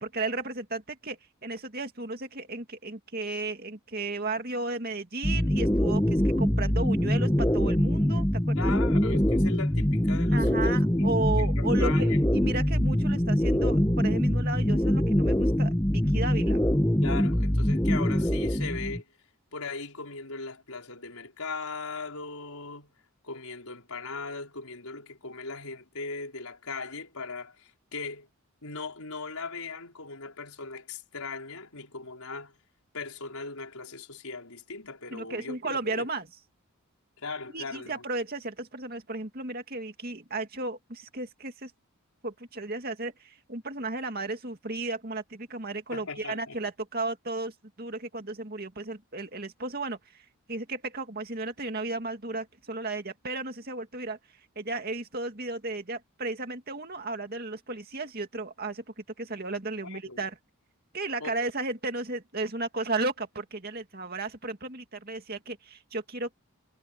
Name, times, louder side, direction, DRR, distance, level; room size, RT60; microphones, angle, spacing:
voice 1, 0.0-8.7 10.3-16.6 35.1-36.3 37.5-41.7 42.2-54.2 54.6-60.4 60.9-66.3, right 2 dB, 45° right, 2.4 m, -34 dB
sound 1, 5.2-19.0, equal, 10° left, 1.1 m, -24 dB
voice 2, 8.5-12.2 17.0-19.2 19.5-22.9 23.2-28.3 28.6-32.6 32.9-36.1 37.2-38.0 45.9-46.6 59.8-60.2 61.2-61.4, left 4 dB, 80° left, 5.1 m, -39 dB
head